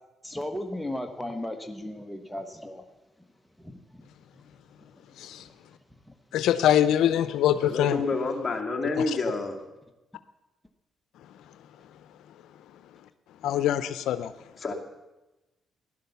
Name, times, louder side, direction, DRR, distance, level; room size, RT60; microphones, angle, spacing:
voice 1, 0.2-2.9 3.6-3.8, left 1 dB, 5° left, 5 dB, 1.2 m, -35 dB
voice 2, 6.3-8.0 13.4-14.3, left 11 dB, 85° left, 13 dB, 0.6 m, -23 dB
voice 3, 7.6-9.6 14.6-14.7, left 3 dB, 30° left, 2 dB, 2.5 m, -28 dB
16.0 x 11.5 x 6.9 m, 1.1 s
cardioid pair, 90°, 0 cm